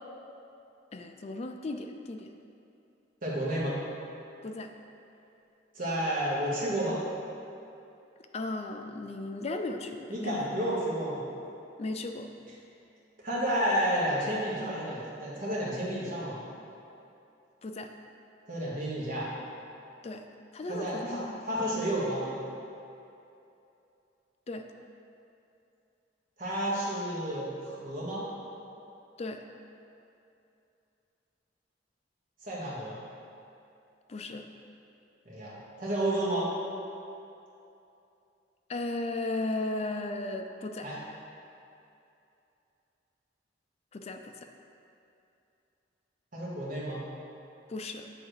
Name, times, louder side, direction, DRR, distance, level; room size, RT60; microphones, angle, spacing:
voice 1, 0.9-2.3 4.4-4.7 8.3-10.5 11.8-12.3 17.6-17.9 20.0-20.2 20.5-21.4 24.5-24.7 29.2-29.5 34.1-34.5 38.7-40.9 43.9-44.3 47.7-48.1, left 2 dB, 35° left, 5 dB, 0.4 m, -35 dB
voice 2, 3.2-3.8 5.7-7.0 10.1-11.2 13.2-16.4 18.5-19.3 20.7-21.2 21.5-22.4 26.4-28.2 32.4-33.0 35.2-36.5 40.8-41.0 46.3-47.0, right 1 dB, 50° right, -6 dB, 1.5 m, -31 dB
7.9 x 3.6 x 4.7 m, 2.7 s
head